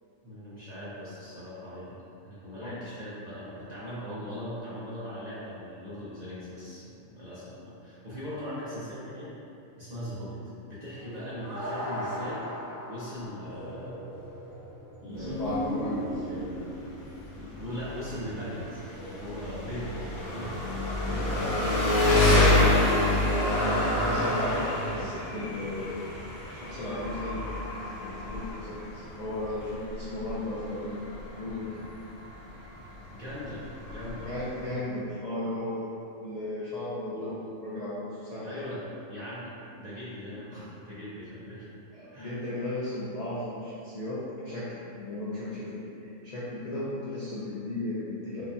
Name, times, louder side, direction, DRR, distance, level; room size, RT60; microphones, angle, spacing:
voice 1, 0.2-9.3 9.8-10.4 10.7-12.4 12.9-14.0 15.0-15.6 16.1-16.6 17.3-20.7 21.0-22.1 25.0-25.1 33.1-34.3 37.1-37.4 38.4-41.6 42.1-42.4, left 1 dB, 40° right, -11 dB, 0.6 m, -40 dB
sound 1, 11.0-22.0 22.7-22.8, equal, 80° right, 1.4 m, -39 dB
voice 2, 15.1-16.2 24.0-26.1 26.5-27.6 28.0-31.0 31.4-31.9 34.2-35.9 36.2-38.5 41.9-45.8 46.2-48.4, left 1 dB, 50° left, -11 dB, 0.4 m, -35 dB
Engine, 15.2-34.7, left 1 dB, 80° left, 1.2 m, -28 dB
4.7 x 2.3 x 2.7 m, 2.7 s
omnidirectional pair, 1.4 m